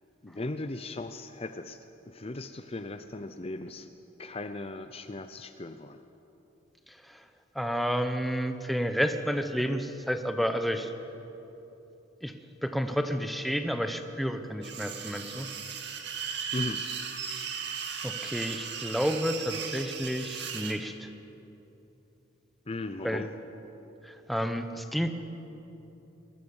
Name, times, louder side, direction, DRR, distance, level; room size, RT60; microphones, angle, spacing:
voice 1, 0.2-3.9 4.2-6.0 16.1-16.9 22.7-23.3, left 2 dB, 30° left, 9 dB, 0.7 m, -38 dB
voice 2, 7.5-10.9 12.2-12.3 12.6-15.5 18.0-21.1 23.0-23.2 24.0-25.1, equal, ahead, 7 dB, 1.1 m, -30 dB
sound 1, 14.6-20.8, right 7 dB, 60° right, 2.1 m, -37 dB
23.0 x 21.0 x 7.2 m, 3.0 s
head